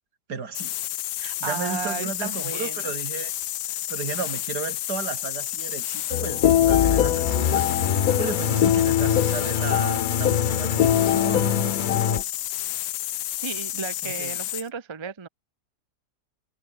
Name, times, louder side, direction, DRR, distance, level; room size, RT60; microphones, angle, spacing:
voice 1, 0.3-0.8 1.4-3.3 3.9-7.6 8.2-11.7 14.0-14.4, right 5 dB, 75° right, 2.9 m, -34 dB
sound 1, 0.5-14.7, left 14 dB, 85° left, 1.4 m, -31 dB
voice 2, 1.2-2.9 13.4-15.3, right 6 dB, 25° right, 0.6 m, -34 dB
sound 2, 6.1-12.2, left 11 dB, 65° left, 1.2 m, -23 dB
sound 3, 6.4-12.2, left 7 dB, 40° left, 0.7 m, -27 dB
omnidirectional pair, 1.8 m